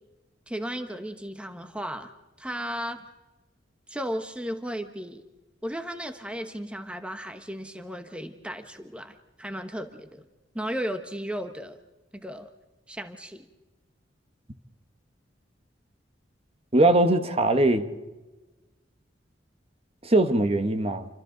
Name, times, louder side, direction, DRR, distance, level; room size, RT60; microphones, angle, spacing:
voice 1, 0.5-2.1 2.4-3.0 3.9-5.2 5.6-10.3 10.5-11.8 12.1-12.5 12.9-13.5, equal, 5° right, 1.0 m, -35 dB
voice 2, 16.7-17.9 20.0-21.1, right 2 dB, 35° right, 1.2 m, -21 dB
29.0 x 25.5 x 3.9 m
head